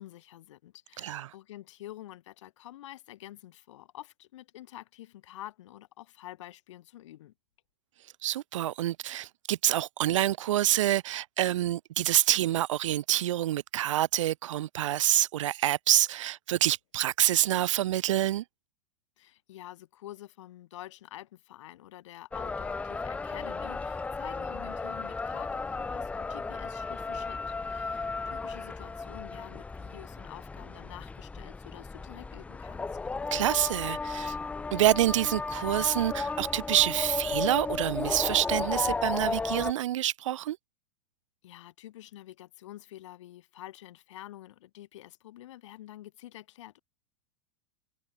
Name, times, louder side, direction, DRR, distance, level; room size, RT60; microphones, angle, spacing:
voice 1, 0.0-7.3 19.2-32.9 41.4-46.8, left 14 dB, 75° left, 2.9 m, -48 dB
voice 2, 1.0-1.3 8.2-18.4 33.3-34.4 34.7-40.6, right 13 dB, 85° right, 0.8 m, -27 dB
sound 1, 22.3-39.7, left 4 dB, 10° left, 0.8 m, -34 dB
supercardioid pair, 145°, 16 cm